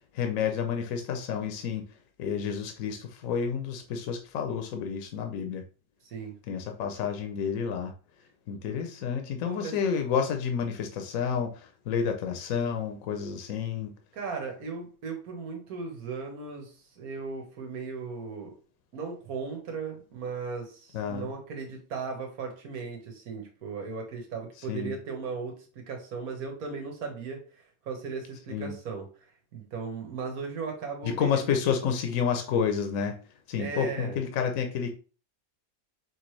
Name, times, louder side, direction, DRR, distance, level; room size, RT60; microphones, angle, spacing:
voice 1, 0.1-1.9 2.2-5.6 6.5-7.9 8.5-13.9 20.9-21.3 24.7-24.9 28.5-28.7 31.0-33.2 33.5-34.9, left 7 dB, 70° left, 5 dB, 1.0 m, -30 dB
voice 2, 6.0-6.3 9.5-9.8 14.1-18.5 18.9-29.1 29.5-31.5 33.6-34.2, right 5 dB, 80° right, 2 dB, 1.6 m, -37 dB
5.2 x 3.2 x 3.1 m, 0.37 s
omnidirectional pair, 1.5 m